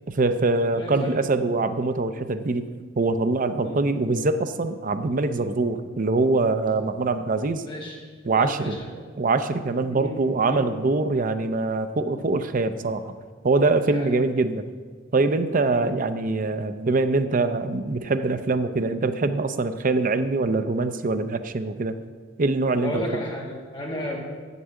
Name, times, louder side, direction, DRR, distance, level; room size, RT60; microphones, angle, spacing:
voice 1, 0.1-2.6 3.0-7.6 8.3-8.8 9.2-13.1 13.4-14.6 15.1-22.0 22.4-23.0, right 3 dB, 40° right, 9 dB, 0.5 m, -23 dB
voice 2, 0.8-1.2 3.6-3.8 7.7-8.0 8.4-9.0 9.9-10.2 10.4-10.7 13.9-14.1 15.7-15.9 22.8-24.2, equal, 25° left, -2 dB, 2.0 m, -33 dB
8.2 x 7.0 x 7.6 m, 1.5 s
head